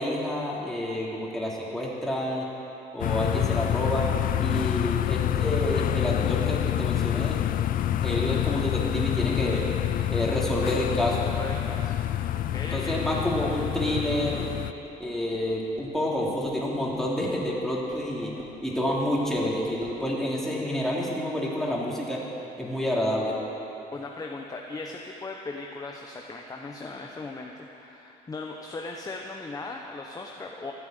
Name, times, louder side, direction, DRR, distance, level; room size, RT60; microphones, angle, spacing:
voice 1, 0.0-2.5 2.9-4.1 4.4-7.4 8.0-9.6 10.1-11.3 12.7-14.4 15.0-18.3 18.6-22.2 22.6-23.4, left 1 dB, ahead, -4 dB, 3.0 m, -28 dB
sound 1, 3.0-14.7, left 12 dB, 55° left, 0.5 m, -27 dB
voice 2, 11.2-12.9 23.9-30.7, left 3 dB, 20° left, 1 dB, 1.0 m, -38 dB
sound 2, 12.5-20.1, right 1 dB, 35° right, 2.8 m, -44 dB
14.5 x 9.4 x 8.1 m, 3.0 s
cardioid pair, 110°, 17 cm